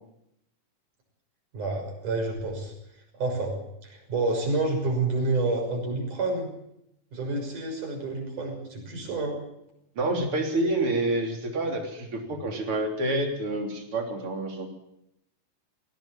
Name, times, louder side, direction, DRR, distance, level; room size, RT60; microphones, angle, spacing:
voice 1, 1.5-2.7 3.2-6.5 7.1-9.4, right 2 dB, 65° right, 1 dB, 7.8 m, -29 dB
voice 2, 10.0-14.7, right 2 dB, 40° right, 3 dB, 4.0 m, -28 dB
20.0 x 17.0 x 7.5 m, 0.79 s
omnidirectional pair, 3.8 m